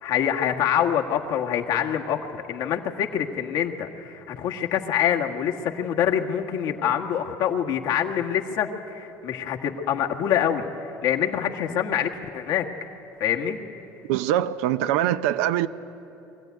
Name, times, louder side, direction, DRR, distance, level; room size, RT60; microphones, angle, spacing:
voice 1, 0.0-12.7 13.2-13.6, left 9 dB, 70° left, 1.5 m, -25 dB
voice 2, 14.1-15.7, right 12 dB, 85° right, 0.6 m, -23 dB
23.0 x 14.5 x 9.4 m
supercardioid pair, 100°, 7 cm